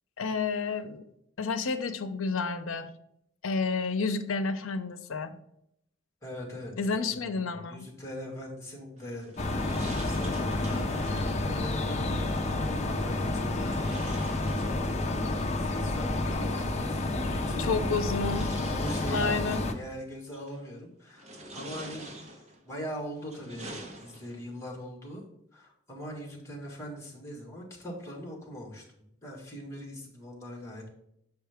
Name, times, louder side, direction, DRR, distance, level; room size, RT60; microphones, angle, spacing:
voice 1, 0.2-1.0 1.4-2.9 3.4-5.4 6.8-7.9 17.6-18.5 19.1-19.7, left 4 dB, 85° left, 10 dB, 0.6 m, -30 dB
voice 2, 6.2-9.4 9.7-17.9 18.3-25.2 25.5-30.9, equal, 15° left, -1 dB, 1.8 m, -42 dB
sound 1, 9.0-11.5 13.5-15.2 16.5-16.6 17.6-19.7 20.3-20.7 21.1-22.6 23.1-24.5, right 1 dB, 35° right, 1.1 m, -46 dB
sound 2, 9.4-19.7, left 2 dB, 35° left, 0.6 m, -30 dB
6.8 x 4.8 x 3.4 m, 0.76 s
head